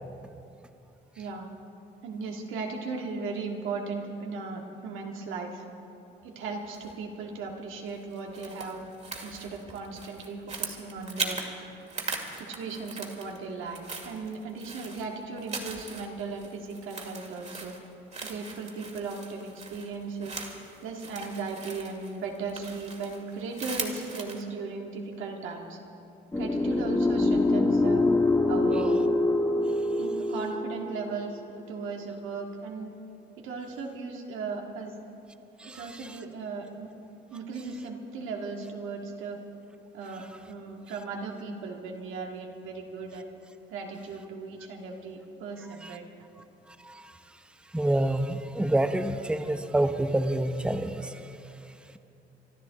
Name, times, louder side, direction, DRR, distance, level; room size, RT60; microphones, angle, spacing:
voice 1, 1.2-1.5 2.0-5.6 6.2-8.8 9.2-11.4 12.4-17.7 18.2-20.3 20.8-25.8 26.4-28.0 28.5-29.0 30.0-31.4 31.7-32.9 33.4-35.0 35.6-36.9 37.3-39.4 39.9-43.2 43.7-46.0, right 4 dB, 85° right, 1 dB, 1.9 m, -37 dB
sound 1, 6.7-7.1 7.9-11.5 11.8-13.4 13.7-24.4, right 3 dB, 35° right, 2.2 m, -39 dB
sound 2, 26.3-31.4, left 2 dB, 15° left, 1.2 m, -25 dB
voice 2, 35.6-36.2 45.8-46.0 46.8-47.1 47.7-51.2, right 1 dB, 5° right, 8 dB, 0.7 m, -28 dB
25.0 x 12.5 x 4.1 m, 2.8 s
cardioid pair, 90°, 20 cm